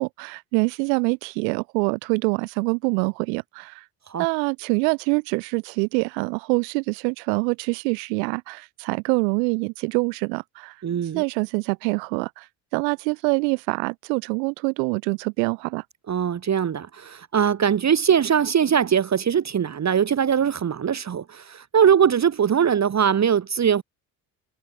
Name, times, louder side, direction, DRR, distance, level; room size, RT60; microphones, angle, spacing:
voice 1, 0.0-3.8 4.2-10.7 11.1-12.5 12.7-15.8, right 33 dB, 85° right, 4.4 m, -25 dB
voice 2, 10.8-11.2 16.1-23.8, right 8 dB, 35° right, 1.2 m, -21 dB
hypercardioid pair, 70°, 49 cm